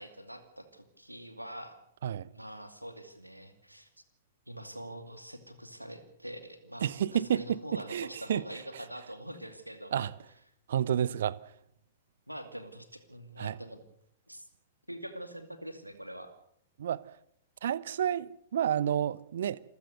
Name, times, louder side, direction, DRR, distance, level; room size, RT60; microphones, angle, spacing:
voice 1, 0.0-1.8 2.3-3.9 4.5-10.1 12.3-13.8 14.3-14.5 14.9-16.3, equal, 90° right, 2.6 m, -44 dB
voice 2, 6.8-8.4 9.9-10.1 10.7-11.4 13.4-13.6 16.8-17.0 17.6-19.6, right 9 dB, 60° right, 0.8 m, -30 dB
27.5 x 15.5 x 6.7 m
figure-of-eight pair, 105°, 0 cm